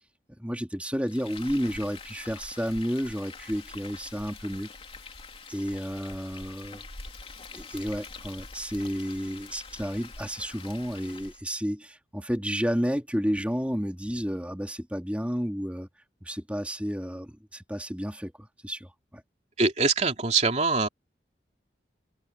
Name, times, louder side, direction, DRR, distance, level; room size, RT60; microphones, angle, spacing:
voice 1, 0.4-4.7 5.5-6.8 7.5-15.9 16.2-19.2, equal, 10° right, 2.8 m, -31 dB
Frying (food), 1.1-11.4, left 4 dB, 35° left, 3.3 m, -45 dB
voice 2, 19.6-20.9, right 4 dB, 40° right, 3.1 m, -23 dB
head